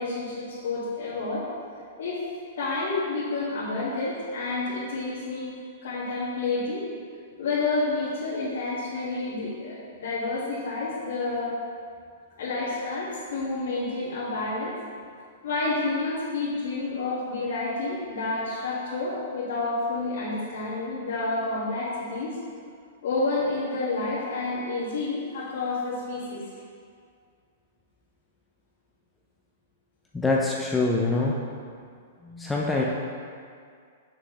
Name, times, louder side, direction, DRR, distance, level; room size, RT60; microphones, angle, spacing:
voice 1, 0.0-1.4 2.0-2.2 2.6-5.5 5.8-6.9 7.4-11.6 12.4-14.7 15.4-22.4 23.0-26.4, left 3 dB, 75° left, -11 dB, 1.9 m, -29 dB
voice 2, 30.1-31.4 32.2-32.8, left 3 dB, 5° left, -3 dB, 0.4 m, -24 dB
7.6 x 6.3 x 3.2 m, 2.2 s
hypercardioid pair, 165°, 0 cm